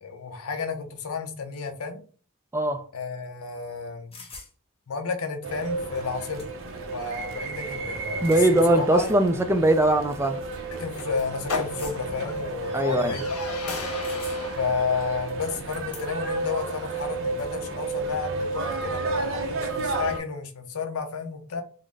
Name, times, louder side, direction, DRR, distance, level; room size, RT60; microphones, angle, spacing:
voice 1, 0.0-2.0 2.9-4.2 4.9-6.5 6.9-8.4 8.7-9.1 10.7-13.3 14.6-21.6, left 5 dB, 65° left, 0.7 m, -32 dB
voice 2, 2.5-2.8 8.2-10.4 12.7-13.2, right 1 dB, 10° right, 0.3 m, -21 dB
sound 1, 4.1-4.5 5.6-5.7 6.0-6.8 8.0-8.5 9.1-9.2 10.0-10.2 11.8-12.2 14.0-14.6 15.0-15.5, left 3 dB, 25° left, 1.0 m, -45 dB
sound 2, 5.4-20.2, right 3 dB, 60° right, 0.6 m, -32 dB
sound 3, 7.5-17.6, left 3 dB, 85° left, 1.1 m, -39 dB
3.8 x 2.1 x 3.4 m
head